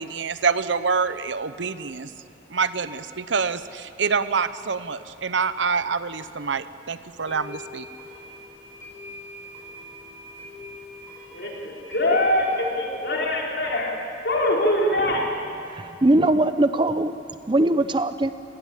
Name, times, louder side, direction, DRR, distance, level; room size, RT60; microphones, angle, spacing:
voice 1, 0.0-2.1 2.5-7.9, right 5 dB, 85° right, 13 dB, 0.9 m, -26 dB
sound 1, 6.2-6.3 7.2-12.6, left 2 dB, 15° left, 5.9 m, -42 dB
voice 2, 11.3-13.9 14.2-15.2, left 1 dB, 65° left, -2 dB, 4.8 m, -23 dB
voice 3, 15.7-17.1 17.5-18.3, right 1 dB, 25° right, 11 dB, 0.7 m, -20 dB
27.5 x 19.5 x 8.4 m, 2.7 s
head